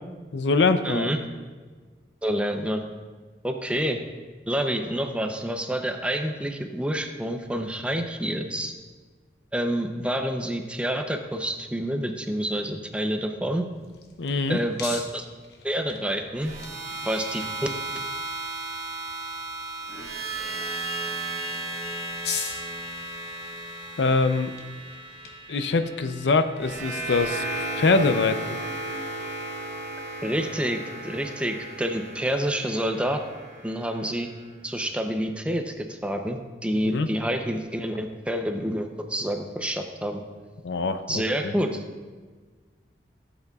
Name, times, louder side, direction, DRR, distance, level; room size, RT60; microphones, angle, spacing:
voice 1, 0.3-1.1 14.2-14.6 24.0-24.5 25.5-27.4 27.8-28.6 36.8-37.1 40.6-41.5, left 3 dB, 80° left, 10 dB, 0.5 m, -23 dB
voice 2, 0.8-1.2 2.2-2.8 3.4-4.0 4.5-8.7 9.5-13.6 14.5-15.3 15.6-16.5 17.0-17.7 30.2-33.2 33.6-34.3 34.6-40.2 41.1-41.8, equal, 5° right, 5 dB, 0.6 m, -28 dB
sound 1, 13.5-27.9, left 6 dB, 65° left, 1.0 m, -43 dB
sound 2, 16.4-34.5, right 2 dB, 40° right, 1.6 m, -35 dB
16.0 x 8.1 x 2.4 m, 1.4 s
head